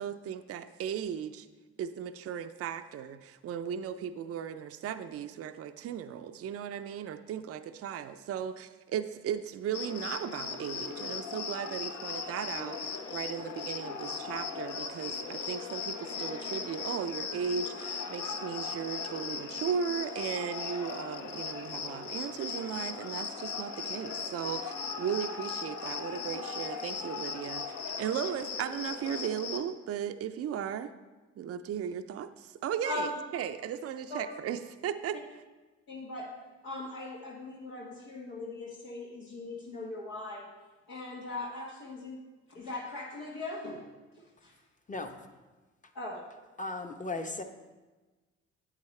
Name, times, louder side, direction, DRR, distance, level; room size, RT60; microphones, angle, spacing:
voice 1, 0.0-1.5 1.8-30.9 31.4-35.2, right 8 dB, 45° right, 9 dB, 0.5 m, -36 dB
Cricket, 9.7-29.6, left 5 dB, 60° left, 0.9 m, -38 dB
voice 2, 35.9-36.3 36.6-40.5 40.9-42.2 42.5-43.8 44.4-44.5 45.9-46.2, left 2 dB, 80° left, -4 dB, 1.3 m, -39 dB
voice 3, 46.6-47.4, left 2 dB, 25° left, 6 dB, 0.8 m, -36 dB
8.6 x 8.5 x 3.2 m, 1.2 s
supercardioid pair, 55°, 32 cm